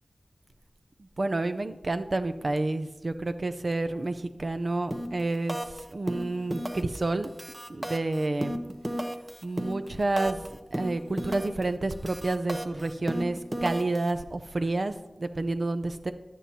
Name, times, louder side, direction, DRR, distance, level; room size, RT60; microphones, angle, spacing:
voice 1, 1.2-7.3 7.7-8.6 9.4-10.5 10.7-16.1, right 2 dB, 60° right, 9 dB, 0.5 m, -29 dB
sound 1, 4.9-5.2 5.5-5.8 6.1-7.0 7.2-10.5 10.7-11.6 11.9-14.1, equal, 20° right, 0.7 m, -33 dB
10.5 x 7.4 x 2.8 m, 1.1 s
wide cardioid pair, 60°, 0 cm